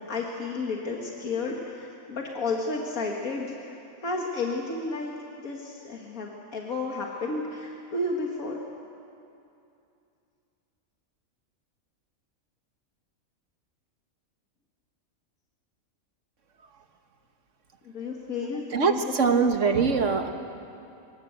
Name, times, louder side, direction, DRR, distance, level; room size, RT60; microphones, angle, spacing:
voice 1, 0.1-8.6 17.9-19.5, left 3 dB, 90° left, 0 dB, 2.2 m, -32 dB
voice 2, 18.7-20.3, right 5 dB, 60° right, 7 dB, 1.6 m, -23 dB
25.0 x 21.5 x 8.1 m, 2.6 s
omnidirectional pair, 1.4 m